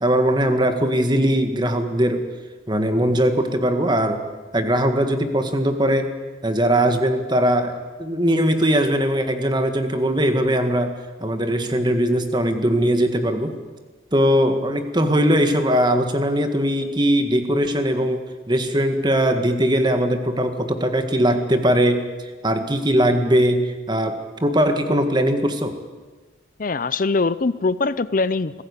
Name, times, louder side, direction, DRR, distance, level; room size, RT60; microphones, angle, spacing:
voice 1, 0.0-2.3 2.7-4.2 4.5-6.1 6.4-10.9 11.2-13.6 14.1-22.0 22.4-25.8, equal, 25° right, 7 dB, 1.7 m, -20 dB
voice 2, 26.6-28.6, left 3 dB, 45° left, 16 dB, 0.6 m, -22 dB
25.0 x 15.5 x 8.5 m, 1.3 s
head